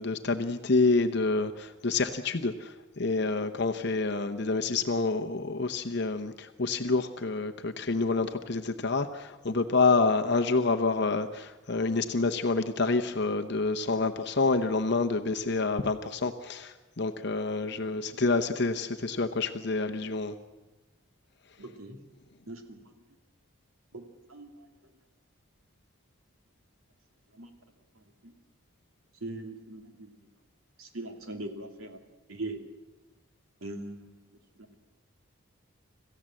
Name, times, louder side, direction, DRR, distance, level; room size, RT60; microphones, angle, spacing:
voice 1, 0.0-20.3, left 3 dB, 55° left, 6 dB, 0.9 m, -28 dB
voice 2, 21.6-22.0 22.5-22.9 23.9-24.0 24.3-24.5 27.3-27.5 28.0-28.3 29.2-30.1 30.8-32.0 32.3-32.6 33.6-34.2, right 2 dB, 90° right, 5 dB, 2.7 m, -40 dB
26.0 x 15.0 x 7.6 m, 1.2 s
head